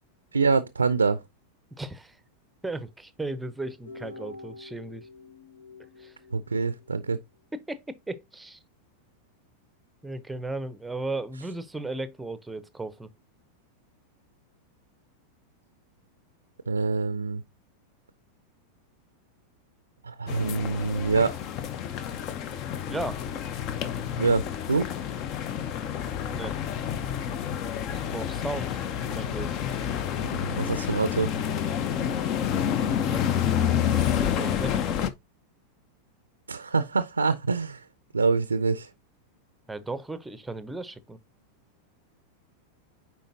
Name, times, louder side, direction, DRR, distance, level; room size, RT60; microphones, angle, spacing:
voice 1, 0.3-1.2 6.3-7.2 16.7-17.4 20.0-21.3 24.2-24.9 30.2-31.3 36.5-37.8 38.1-38.9, right 4 dB, 75° right, 0.5 m, -25 dB
voice 2, 1.8-2.2 2.6-5.1 6.0-6.1 7.5-8.6 10.0-13.1 22.9-23.2 26.3-26.5 27.9-28.8 29.1-29.6 33.0-33.3 33.6-35.0 39.7-41.2, right 2 dB, 5° right, 0.7 m, -36 dB
sound 1, 3.9-7.1, left 2 dB, 75° left, 1.1 m, -46 dB
sound 2, 20.3-35.1, left 9 dB, 40° left, 0.7 m, -29 dB
9.1 x 4.3 x 2.8 m
figure-of-eight pair, 90°, 0 cm